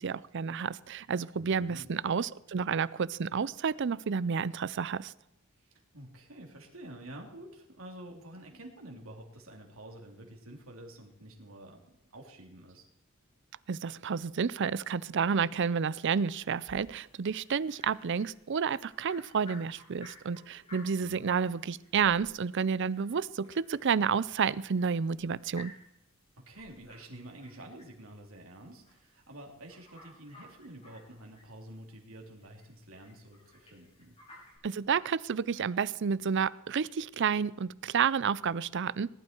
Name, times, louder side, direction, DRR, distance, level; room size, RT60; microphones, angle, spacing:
voice 1, 0.0-5.1 13.7-25.7 34.6-39.1, right 6 dB, 60° right, 19 dB, 0.5 m, -30 dB
voice 2, 1.4-1.9 5.6-12.9 21.0-21.2 26.4-34.1, right 1 dB, 85° right, 1 dB, 3.1 m, -49 dB
sound 1, 16.2-34.6, left 1 dB, 30° left, 6.4 m, -57 dB
19.5 x 12.0 x 4.5 m, 0.86 s
head